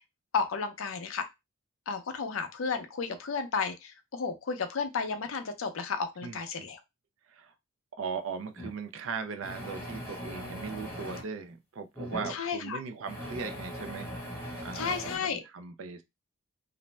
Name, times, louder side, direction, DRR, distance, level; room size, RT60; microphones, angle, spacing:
voice 1, 0.3-1.3 1.9-6.8 12.3-12.8 14.7-15.4, left 5 dB, 65° left, 0.5 m, -33 dB
voice 2, 6.2-6.7 7.3-7.5 8.0-14.1 14.6-16.0, right 5 dB, 65° right, 0.5 m, -38 dB
sound 1, 8.6-8.7 9.4-11.2 12.0-12.3 13.1-15.2, equal, 10° left, 1.0 m, -40 dB
2.5 x 2.1 x 3.1 m
head